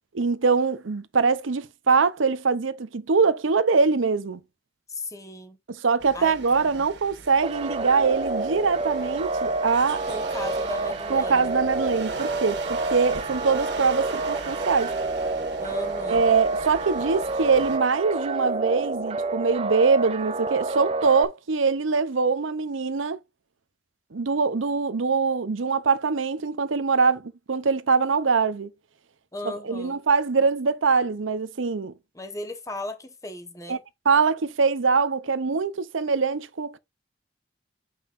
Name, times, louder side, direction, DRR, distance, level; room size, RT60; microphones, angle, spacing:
voice 1, 0.1-4.4 5.8-10.0 11.1-14.9 16.1-23.2 24.1-28.7 29.6-31.9 33.7-33.8 34.1-36.8, right 4 dB, 90° right, 0.7 m, -23 dB
voice 2, 4.9-5.6 6.1-6.9 10.1-11.6 15.6-16.3 29.3-30.0 32.1-33.8, left 2 dB, 15° left, 1.1 m, -36 dB
sound 1, 6.0-17.8, right 4 dB, 65° right, 1.9 m, -41 dB
sound 2, 7.4-21.3, right 3 dB, 30° right, 0.5 m, -28 dB
7.4 x 5.6 x 2.5 m
head